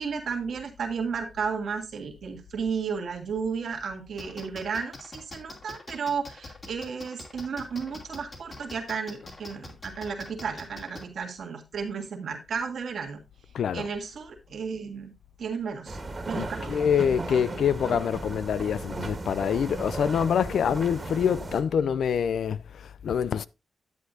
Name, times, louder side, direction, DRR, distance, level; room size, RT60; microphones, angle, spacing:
voice 1, 0.0-13.2 13.7-15.1 15.4-16.0 16.3-16.8, right 5 dB, 75° right, 1.8 m, -33 dB
sound 1, 4.2-11.0, left 2 dB, 45° left, 2.7 m, -43 dB
voice 2, 13.5-13.9 16.4-23.5, left 8 dB, 80° left, 0.4 m, -26 dB
sound 2, 15.9-21.6, right 2 dB, 35° right, 1.6 m, -36 dB
10.5 x 7.9 x 2.6 m
cardioid pair, 75°, 0 cm